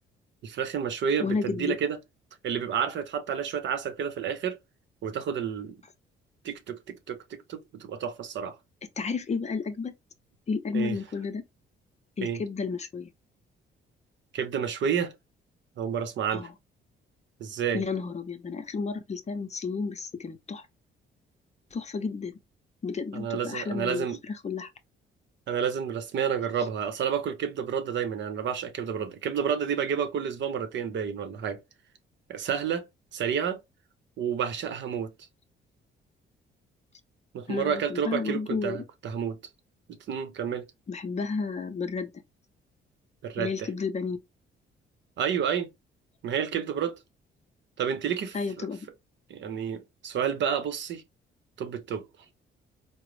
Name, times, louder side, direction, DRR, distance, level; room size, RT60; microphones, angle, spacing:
voice 1, 0.4-2.0 2.4-4.6 5.0-5.8 6.4-8.5 10.7-11.0 12.2-12.4 14.3-15.1 15.8-16.5 17.4-17.8 23.1-24.2 25.5-31.6 32.3-32.8 33.1-33.6 34.2-35.1 37.3-39.4 40.1-40.6 43.2-43.7 45.2-45.7 46.2-47.0 47.8-48.4 49.3-51.0 51.6-52.1, right 7 dB, 65° right, 0.8 m, -30 dB
voice 2, 1.2-1.7 9.0-9.9 10.5-11.4 12.2-13.1 16.3-16.5 17.7-20.7 21.7-22.4 22.8-24.7 37.5-38.8 40.9-42.1 43.4-44.2 48.3-48.8, left 4 dB, 35° left, 0.7 m, -32 dB
3.8 x 2.0 x 3.1 m
cardioid pair, 90°, 20 cm